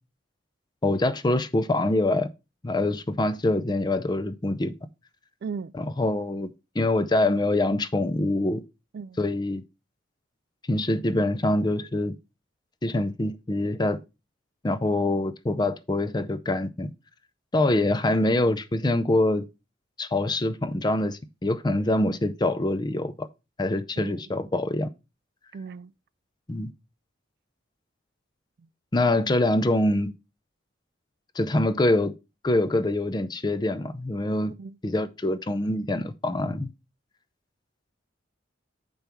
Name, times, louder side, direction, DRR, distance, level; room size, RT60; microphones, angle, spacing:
voice 1, 0.8-2.3 2.6-4.7 5.7-6.5 6.8-8.6 9.2-9.6 10.7-12.2 12.8-14.0 14.6-16.9 17.5-19.5 20.0-23.3 23.6-24.9 26.5-26.7 28.9-30.1 31.4-32.1 32.4-34.5 34.8-36.7, left 1 dB, 20° left, 0.5 m, -25 dB
voice 2, 5.4-5.7 8.9-9.2 24.0-24.2 25.5-25.9 34.6-34.8, right 5 dB, 55° right, 0.3 m, -36 dB
6.8 x 5.4 x 4.5 m
head